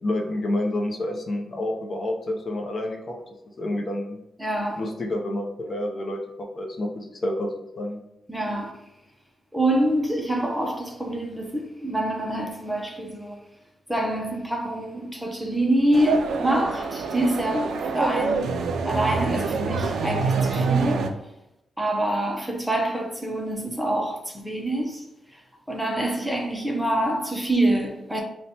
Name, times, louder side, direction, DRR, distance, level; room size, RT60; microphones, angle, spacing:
voice 1, 0.0-3.2 3.6-4.2 4.8-8.0, left 1 dB, 40° left, 0.6 m, -29 dB
voice 2, 4.4-4.8 8.3-8.8 9.5-13.4 13.9-21.1 21.8-25.1 25.3-25.4 25.7-28.2, right 1 dB, 5° right, 0.5 m, -26 dB
sound 1, 15.9-21.1, right 4 dB, 80° right, 0.3 m, -26 dB
5.6 x 2.2 x 2.7 m
wide cardioid pair, 135°, 0 cm